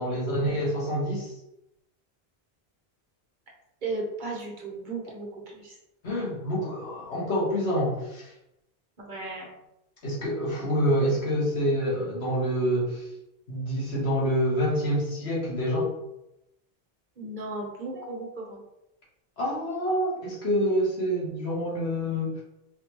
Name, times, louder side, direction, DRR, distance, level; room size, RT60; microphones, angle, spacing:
voice 1, 0.0-1.3 6.0-8.3 10.0-13.0 13.5-15.9 19.4-22.4, equal, 80° left, -5 dB, 1.5 m, -27 dB
voice 2, 3.8-5.8 9.0-9.5 17.2-18.6, right 2 dB, 50° right, -2 dB, 1.0 m, -35 dB
4.1 x 3.0 x 2.9 m, 0.87 s
omnidirectional pair, 1.1 m